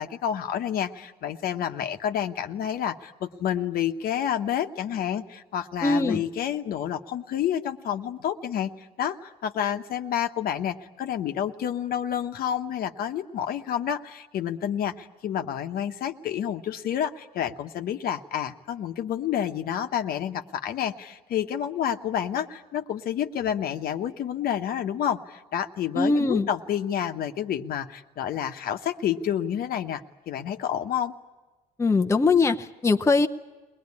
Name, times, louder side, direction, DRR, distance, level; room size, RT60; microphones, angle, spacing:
voice 1, 0.0-31.1, left 9 dB, 60° left, 7 dB, 1.1 m, -29 dB
voice 2, 5.8-6.2 26.0-26.5 31.8-33.3, left 3 dB, 15° left, 5 dB, 0.8 m, -21 dB
22.5 x 19.0 x 9.7 m, 1.2 s
cardioid pair, 110°, 17 cm